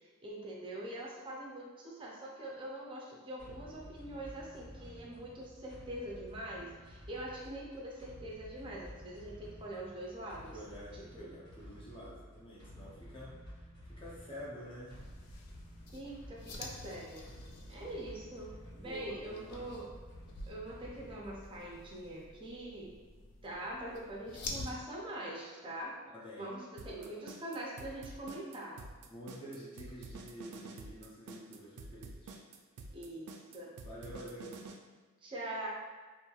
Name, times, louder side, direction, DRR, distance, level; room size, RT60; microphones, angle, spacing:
voice 1, 0.0-10.5 10.9-11.3 15.9-17.2 17.7-19.9 20.5-22.9 23.4-26.0 26.4-28.8 32.9-33.7 35.2-35.7, right 1 dB, 20° right, -3 dB, 0.5 m, -43 dB
sound 1, 3.4-21.8, equal, 50° left, 1.3 m, -52 dB
voice 2, 10.2-15.0 18.8-19.6 26.1-26.5 26.8-27.1 29.1-32.4 32.9-33.0 33.8-34.6, equal, 20° left, -6 dB, 0.6 m, -49 dB
sound 2, 14.9-24.7, left 2 dB, 85° left, 0.4 m, -49 dB
sound 3, 26.8-34.8, right 3 dB, 85° right, 0.3 m, -48 dB
3.0 x 2.5 x 2.3 m, 1.4 s
head